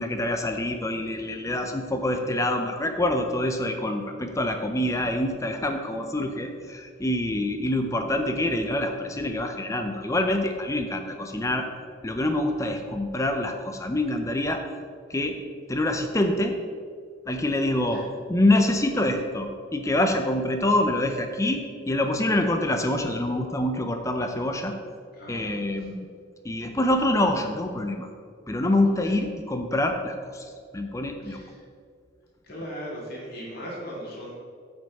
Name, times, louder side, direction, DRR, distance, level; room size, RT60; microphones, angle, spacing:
voice 1, 0.0-11.6 12.0-14.6 15.1-15.4 15.7-16.6 17.3-24.7 25.3-26.0 26.4-28.1 28.5-31.4, left 1 dB, 15° left, 5 dB, 0.5 m, -26 dB
voice 2, 25.1-25.9 29.0-29.1 31.2-31.6 32.4-34.3, equal, 50° left, -5 dB, 2.1 m, -39 dB
9.0 x 5.3 x 4.7 m, 2.2 s
head